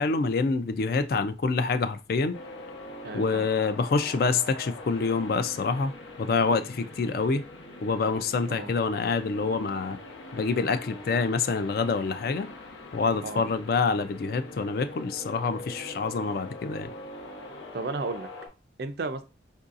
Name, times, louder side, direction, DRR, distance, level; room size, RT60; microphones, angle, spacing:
voice 1, 0.0-2.4 3.1-5.9 6.2-7.4 7.8-10.0 10.3-12.5 12.9-16.9, left 4 dB, 55° left, 10 dB, 0.3 m, -26 dB
sound 1, 2.3-18.5, left 2 dB, 85° left, 0.8 m, -43 dB
voice 2, 3.0-3.5 8.6-8.7 13.2-13.5 17.7-18.3 18.8-19.2, right 3 dB, 55° right, 9 dB, 0.4 m, -33 dB
4.6 x 2.6 x 2.5 m, 0.30 s
head